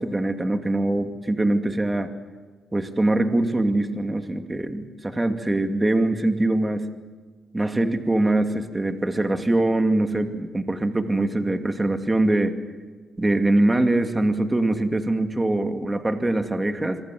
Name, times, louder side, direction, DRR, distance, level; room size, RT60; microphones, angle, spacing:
voice 1, 0.0-2.1 2.7-6.9 7.5-12.6 13.2-17.0, right 2 dB, 15° right, 6 dB, 2.4 m, -23 dB
26.5 x 24.5 x 7.7 m, 1.4 s
cardioid pair, 90°, 0 cm